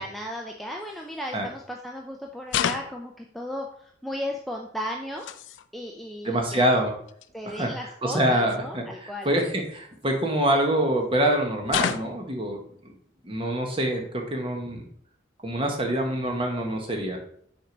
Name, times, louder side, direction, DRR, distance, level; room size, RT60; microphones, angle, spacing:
voice 1, 0.0-5.2 5.7-6.6 7.3-9.3, equal, ahead, 0 dB, 0.4 m, -35 dB
sound 1, 0.8-1.0 2.5-3.1 4.9-5.7 6.8-6.9 7.1-7.3 8.5-8.6 9.6-10.6 11.7-12.3, left 8 dB, 75° left, 0.4 m, -30 dB
voice 2, 6.2-6.9 7.4-7.7 8.0-12.6 13.2-14.8 15.4-17.2, right 1 dB, 25° right, 2 dB, 1.1 m, -25 dB
6.3 x 4.6 x 3.8 m, 0.65 s
head